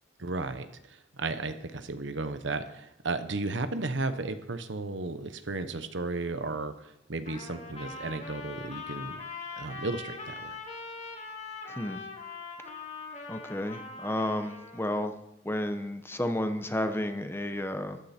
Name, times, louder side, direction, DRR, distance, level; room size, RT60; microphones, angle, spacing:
voice 1, 0.2-9.2 9.6-10.6, right 3 dB, 85° right, 10 dB, 1.0 m, -34 dB
Trumpet, 7.2-15.1, left 4 dB, 40° left, 2.1 m, -42 dB
voice 2, 11.7-12.0 13.3-15.2 15.4-18.0, left 1 dB, 15° left, 8 dB, 0.9 m, -32 dB
14.0 x 11.5 x 4.4 m, 0.83 s
head